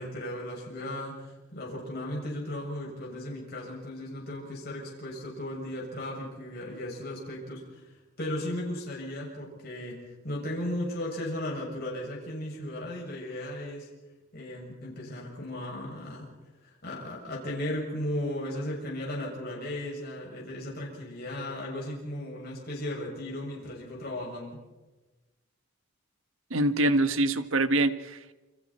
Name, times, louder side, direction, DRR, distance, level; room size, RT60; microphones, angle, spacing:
voice 1, 0.0-13.9 14.3-16.3 16.6-24.6, left 1 dB, 45° left, -3 dB, 7.1 m, -36 dB
voice 2, 26.5-28.3, right 2 dB, 70° right, 10 dB, 1.4 m, -25 dB
29.0 x 26.0 x 4.4 m, 1.1 s
head